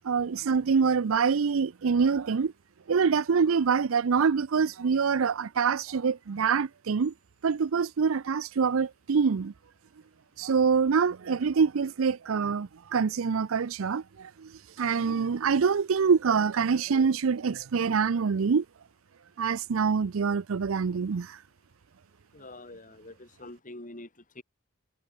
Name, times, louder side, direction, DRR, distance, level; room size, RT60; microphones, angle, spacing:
voice 1, 0.0-2.5 2.9-7.1 7.4-9.5 10.4-14.5 14.8-18.6 19.4-21.4, right 5 dB, 80° right, 0.5 m, -25 dB
voice 2, 22.3-24.1 24.4-24.5, left 2 dB, 40° left, 3.6 m, -45 dB
head